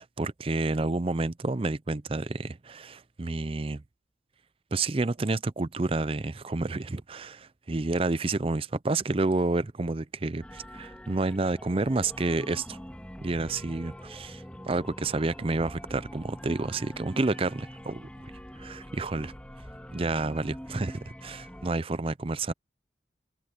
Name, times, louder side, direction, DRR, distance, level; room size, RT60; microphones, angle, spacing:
voice 1, 0.0-3.8 4.7-12.8 13.2-18.1 18.6-19.3 19.9-22.5, right 3 dB, 30° right, 0.5 m, -29 dB
sound 1, 10.4-21.7, equal, 5° left, 2.0 m, -44 dB
head